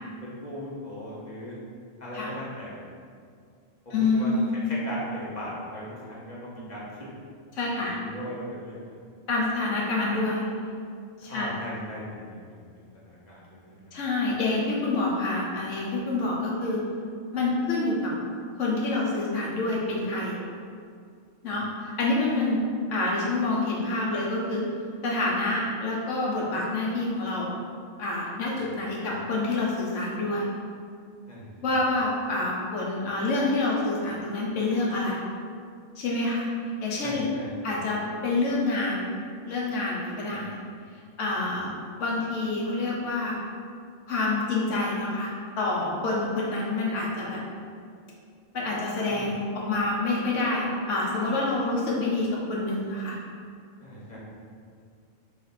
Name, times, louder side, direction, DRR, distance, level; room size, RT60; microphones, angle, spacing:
voice 1, 0.2-1.6 2.0-2.8 3.8-4.3 4.6-6.9 7.8-8.9 11.3-13.8 21.5-21.6 28.6-28.9 31.3-31.8 37.0-37.7 40.3-40.4 49.1-49.3 53.8-54.2, left 1 dB, 40° left, -7 dB, 0.9 m, -39 dB
voice 2, 3.9-4.6 7.5-8.0 9.3-10.4 11.2-11.5 13.9-16.8 17.3-18.1 18.6-20.4 21.4-22.6 22.9-24.6 25.0-27.5 28.0-30.5 31.6-35.2 36.0-36.5 36.8-37.3 37.6-39.1 39.5-40.6 41.2-41.7 42.0-43.4 44.1-45.3 45.6-47.4 48.5-53.2, left 2 dB, 70° left, -4 dB, 1.1 m, -27 dB
3.4 x 3.1 x 4.0 m, 2.2 s
omnidirectional pair, 1.3 m